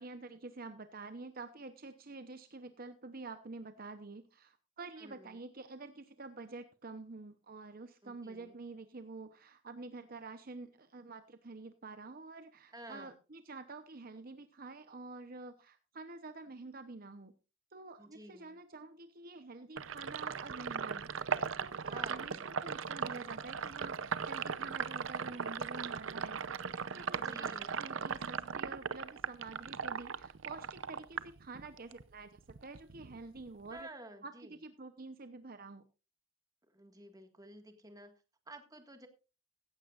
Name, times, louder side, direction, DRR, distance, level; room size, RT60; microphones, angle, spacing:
voice 1, 0.0-17.3 17.7-26.4 26.7-27.5 27.8-32.3 32.6-33.9 34.2-35.8, right 3 dB, 45° right, 9 dB, 0.9 m, -48 dB
voice 2, 5.0-5.4 8.0-8.5 12.7-13.1 18.0-18.6 21.9-22.3 27.1-27.8 33.7-34.5 36.7-39.1, right 1 dB, 20° right, 6 dB, 1.8 m, -52 dB
Sink (filling or washing), 19.8-32.0 32.4-33.8, right 6 dB, 70° right, 0.7 m, -38 dB
16.0 x 14.5 x 2.5 m, 0.31 s
head